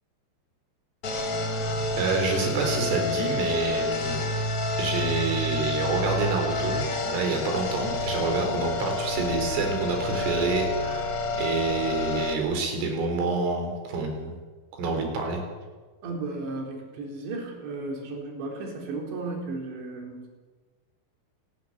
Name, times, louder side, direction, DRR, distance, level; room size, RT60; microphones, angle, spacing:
sound 1, 1.0-12.3, left 2 dB, 40° left, 2.6 m, -29 dB
voice 1, 2.0-4.3 4.8-14.3 14.8-15.4, right 4 dB, 90° right, 4 dB, 6.8 m, -28 dB
voice 2, 16.0-20.4, right 3 dB, 65° right, 1 dB, 6.2 m, -34 dB
28.5 x 13.0 x 9.9 m, 1.3 s
omnidirectional pair, 5.6 m